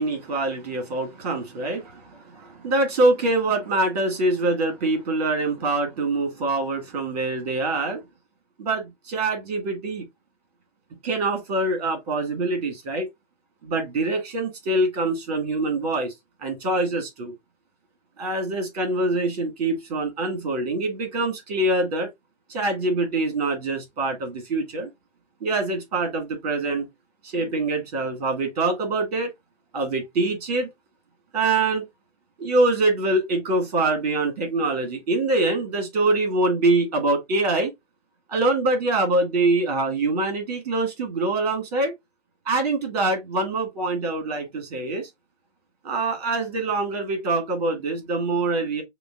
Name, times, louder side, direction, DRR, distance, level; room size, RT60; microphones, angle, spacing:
voice 1, 0.0-8.0 8.6-10.0 11.0-13.1 13.6-16.1 16.4-17.3 18.2-22.1 22.5-24.9 25.4-26.9 27.2-29.3 29.7-30.7 31.3-31.8 32.4-37.7 38.3-41.9 42.4-45.1 45.8-48.8, right 2 dB, 35° right, 1.6 m, -24 dB
6.5 x 2.3 x 2.4 m
figure-of-eight pair, 150°, 36 cm